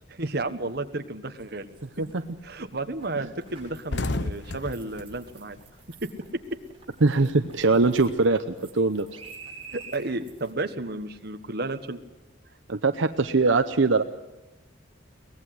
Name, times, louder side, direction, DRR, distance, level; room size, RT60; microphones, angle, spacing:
voice 1, 0.1-1.7 2.4-5.6 6.0-6.1 9.7-12.0, right 2 dB, 55° right, 8 dB, 1.4 m, -32 dB
sound 1, 1.4-10.5, right 5 dB, 30° right, 5.9 m, -49 dB
sound 2, 1.8-2.1 2.5-2.7 2.9-3.1 3.4-6.4 6.7-8.3, left 2 dB, 60° left, 1.0 m, -34 dB
voice 2, 7.0-9.1 12.7-14.0, right 3 dB, 75° right, 8 dB, 0.9 m, -22 dB
23.0 x 19.0 x 7.9 m, 0.99 s
head